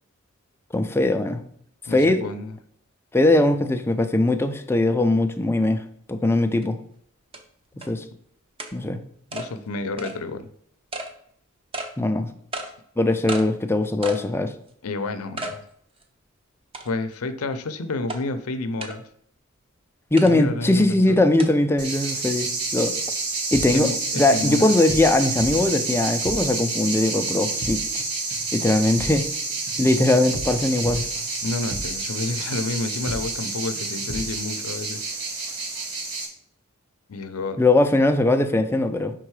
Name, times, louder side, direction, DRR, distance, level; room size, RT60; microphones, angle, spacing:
voice 1, 0.7-1.4 1.9-2.2 3.1-5.8 6.1-6.8 7.9-8.0 8.7-9.0 12.0-12.3 13.0-14.5 20.1-22.9 23.5-23.9 24.1-28.0 28.5-29.3 29.8-31.1 37.6-39.1, left 2 dB, 10° left, 7 dB, 0.4 m, -20 dB
voice 2, 1.9-2.5 9.3-10.5 14.8-15.6 16.8-19.0 20.2-21.2 23.7-24.7 31.4-35.0 37.1-37.6, left 3 dB, 85° left, 10 dB, 0.6 m, -30 dB
sound 1, 6.6-6.7 7.3-7.4 7.8-7.9 8.6-8.7 9.3-9.5 10.0-10.2 10.9-11.1 11.7-11.9 12.5-12.7 13.3-13.5 14.0-14.3 14.7-14.8 15.4-15.6 16.0-16.1 16.7-17.1 18.1-18.2 18.8-19.0 20.2-20.3 21.4-21.5, right 2 dB, 25° right, 0.6 m, -32 dB
sound 2, 21.8-36.3, right 3 dB, 85° right, 1.4 m, -29 dB
sound 3, 23.5-24.4 24.7-26.7 26.9-27.2 27.5-28.0 28.3-32.1 32.4-32.7 33.0-33.5 33.8-34.4, equal, 55° right, 1.3 m, -37 dB
5.4 x 3.8 x 4.7 m, 0.67 s
head